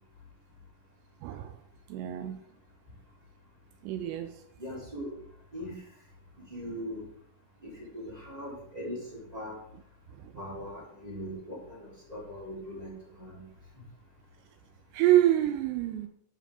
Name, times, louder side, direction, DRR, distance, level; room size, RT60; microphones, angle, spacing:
voice 1, 1.2-1.6 1.9-2.4 3.8-4.4 10.2-10.3 14.9-16.1, right 13 dB, 85° right, 9 dB, 2.5 m, -26 dB
voice 2, 4.6-5.1 5.5-5.7 6.5-7.0 7.6-9.6 10.3-12.9 13.2-13.4, equal, 10° right, -6 dB, 2.5 m, -40 dB
12.5 x 7.1 x 3.6 m, 0.71 s
omnidirectional pair, 5.6 m